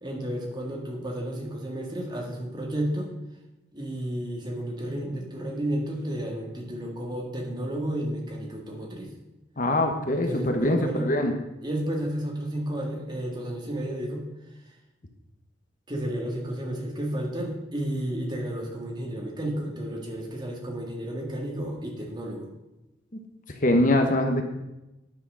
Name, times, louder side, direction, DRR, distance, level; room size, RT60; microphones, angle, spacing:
voice 1, 0.0-3.1 3.7-9.1 10.1-11.1 11.6-14.2 15.9-22.5, right 1 dB, 25° right, 0 dB, 2.0 m, -32 dB
voice 2, 9.6-11.3 23.6-24.4, left 1 dB, 45° left, 4 dB, 1.1 m, -23 dB
9.9 x 6.4 x 6.3 m, 0.97 s
head